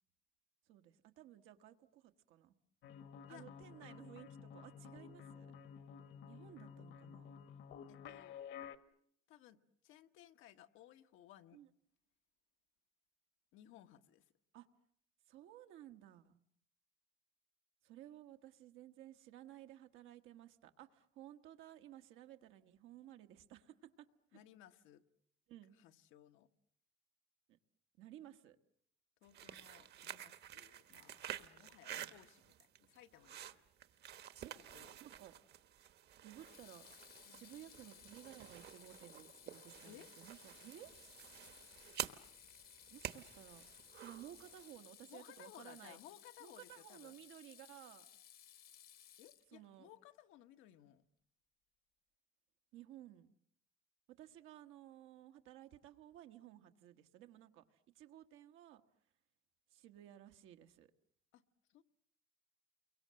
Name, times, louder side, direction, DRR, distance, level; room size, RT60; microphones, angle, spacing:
voice 1, 0.6-2.5 3.3-5.6 6.2-7.3 11.5-11.7 14.5-14.7 15.3-16.4 17.8-24.4 25.5-25.8 27.5-27.6 28.0-28.6 34.4-34.6 35.0-35.4 36.2-36.9 37.2-40.9 42.9-43.7 44.0-46.0 46.4-48.1 49.5-49.9 52.7-53.3 54.1-59.1 59.7-60.9, right 12 dB, 85° right, 6 dB, 1.4 m, -56 dB
sound 1, 2.8-8.8, left 7 dB, 70° left, 1.4 m, -53 dB
voice 2, 7.9-8.4 9.3-11.6 13.5-14.3 24.3-25.0 25.8-26.5 29.2-33.6 34.7-34.9 37.3-37.4 39.8-40.1 45.1-47.1 49.2-51.0 61.3-61.4 61.7-61.8, left 12 dB, 90° left, 7 dB, 1.3 m, -60 dB
sound 2, 29.2-44.8, right 10 dB, 55° right, 1.2 m, -51 dB
Water tap faucet / Sink (filling or washing), 34.7-35.0 36.3-49.8, left 10 dB, 50° left, 1.0 m, -60 dB
29.5 x 23.5 x 7.6 m, 0.67 s
cardioid pair, 145°, 20 cm